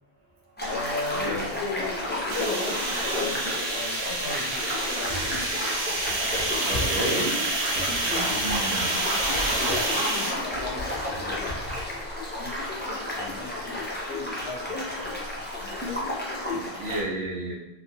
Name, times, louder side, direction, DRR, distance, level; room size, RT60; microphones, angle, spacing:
sound 1, 0.6-17.0, left 1 dB, 15° left, 0.4 m, -32 dB
voice 1, 0.7-4.6 4.9-5.7 6.6-7.3 8.0-8.5 9.6-11.5 12.4-12.5 12.9-13.8 14.1-15.3 15.6-16.1, left 3 dB, 80° left, 1 dB, 0.8 m, -37 dB
sound 2, 2.3-10.3, right 2 dB, 55° right, 0.4 m, -28 dB
sound 3, 5.1-5.5 5.9-9.8 10.5-12.0, equal, ahead, 0.8 m, -38 dB
voice 2, 6.7-7.4 8.3-8.9 16.5-17.5, right 1 dB, 80° right, -2 dB, 1.0 m, -31 dB
3.0 x 2.2 x 2.6 m, 0.96 s
omnidirectional pair, 1.1 m